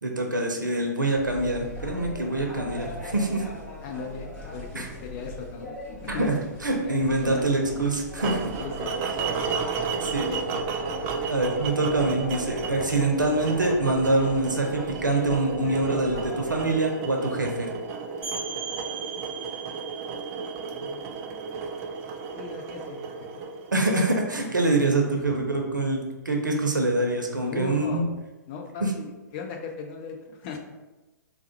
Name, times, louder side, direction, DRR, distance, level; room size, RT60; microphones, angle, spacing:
voice 1, 0.0-3.4 4.7-4.9 6.1-6.3 6.6-8.3 10.0-10.3 11.3-17.7 23.7-28.0 28.8-28.9, right 2 dB, 85° right, 2 dB, 0.6 m, -25 dB
sound 1, 1.2-16.7, left 1 dB, 10° left, 1.1 m, -40 dB
voice 2, 3.8-5.7 6.0-6.4 6.8-6.9 7.2-7.5 8.3-8.9 9.2-9.5 10.3-10.6 20.7-21.7 22.4-23.0 23.3-23.4 24.7-25.4 27.4-28.1 28.5-30.6, left 5 dB, 35° left, 2 dB, 0.6 m, -38 dB
sound 2, 8.2-24.3, right 5 dB, 25° right, 0.3 m, -33 dB
sound 3, 18.2-23.7, right 6 dB, 10° right, 1.5 m, -40 dB
3.5 x 2.1 x 4.3 m, 1.1 s
figure-of-eight pair, 115°, 10 cm